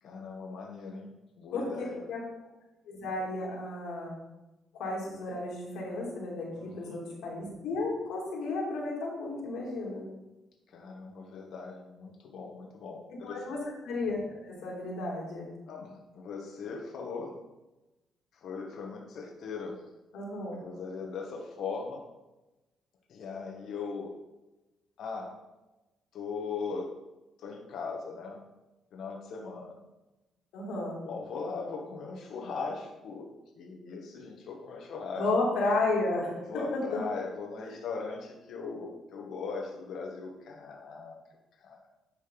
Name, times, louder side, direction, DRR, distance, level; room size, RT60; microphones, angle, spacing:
voice 1, 0.0-2.0 6.5-7.0 10.7-13.6 15.7-17.4 18.4-19.8 20.5-22.0 23.1-24.1 25.0-25.4 26.1-26.9 27.4-28.4 28.9-29.8 31.0-35.3 36.5-41.2 41.6-41.8, left 4 dB, 70° left, 1 dB, 1.4 m, -39 dB
voice 2, 2.9-4.1 4.7-10.0 13.2-13.6 13.8-15.5 20.1-20.6 30.5-31.0 35.1-36.4 36.7-37.0, left 2 dB, 90° left, -3 dB, 2.8 m, -33 dB
10.5 x 5.2 x 4.0 m, 1.0 s
cardioid pair, 90°, 0 cm